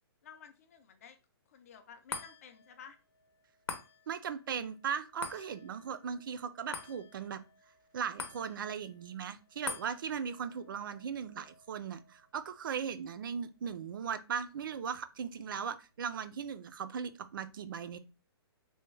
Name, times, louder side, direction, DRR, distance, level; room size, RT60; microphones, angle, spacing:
voice 1, 0.2-1.2 1.5-3.0, left 7 dB, 35° left, 0.4 m, -53 dB
sound 1, 2.1-14.7 15.1-15.2, left 5 dB, 85° left, 0.8 m, -48 dB
voice 2, 4.1-7.4 7.9-18.0, right 7 dB, 55° right, 0.4 m, -38 dB
3.4 x 2.2 x 3.1 m
hypercardioid pair, 170°, 13 cm